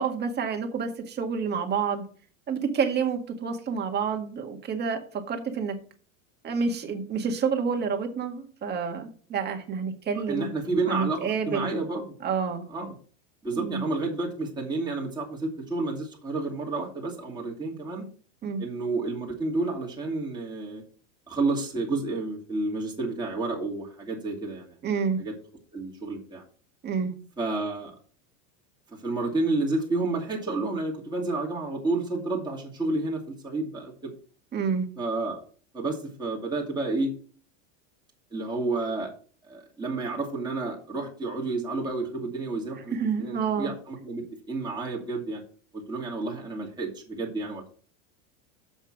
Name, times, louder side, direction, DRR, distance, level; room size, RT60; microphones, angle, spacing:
voice 1, 0.0-2.0 2.5-5.0 5.3-5.8 6.4-10.5 10.9-11.7 12.2-12.6 13.5-13.9 18.4-18.6 24.8-25.2 26.8-27.1 34.5-34.9 42.9-43.7, right 6 dB, 25° right, 4 dB, 1.8 m, -28 dB
voice 2, 10.3-12.1 12.7-12.9 13.4-18.1 18.6-20.8 21.3-24.8 25.2-25.3 25.7-26.4 27.4-28.0 28.9-34.1 35.0-35.4 35.7-37.1 38.3-39.1 39.4-45.4 45.7-47.7, right 3 dB, 10° right, -3 dB, 2.4 m, -30 dB
7.2 x 5.9 x 5.9 m, 0.42 s
supercardioid pair, 125°, 36 cm